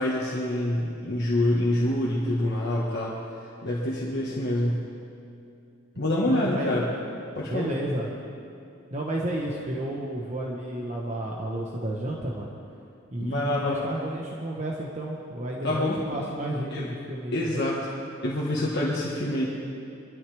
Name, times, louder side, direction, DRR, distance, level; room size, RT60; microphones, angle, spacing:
voice 1, 0.0-3.2 3.6-4.8 6.0-6.8 7.3-7.7 13.2-13.8 15.6-16.0 16.7-16.9 17.3-17.9 18.2-19.4, left 1 dB, 55° left, -6 dB, 1.6 m, -26 dB
voice 2, 6.2-6.7 7.4-8.1 8.9-12.5 13.1-17.7, right 1 dB, 35° right, -2 dB, 1.2 m, -32 dB
23.0 x 12.5 x 3.5 m, 2.6 s
head